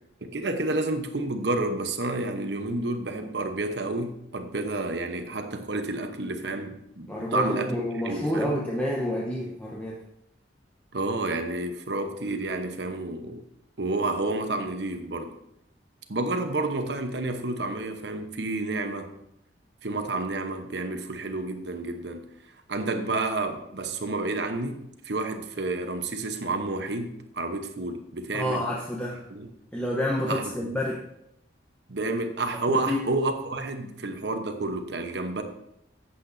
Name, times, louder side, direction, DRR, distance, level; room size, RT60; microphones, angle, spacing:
voice 1, 0.2-7.8 8.0-8.6 10.9-13.4 13.8-15.3 16.1-19.2 19.8-22.3 22.7-28.7 29.3-29.5 30.3-30.7 31.9-35.4, right 2 dB, 65° right, 6 dB, 1.0 m, -30 dB
voice 2, 7.1-10.0 28.3-29.3 29.7-31.0 32.5-33.1, left 1 dB, 10° left, -4 dB, 0.9 m, -29 dB
11.5 x 8.3 x 2.7 m, 0.80 s
head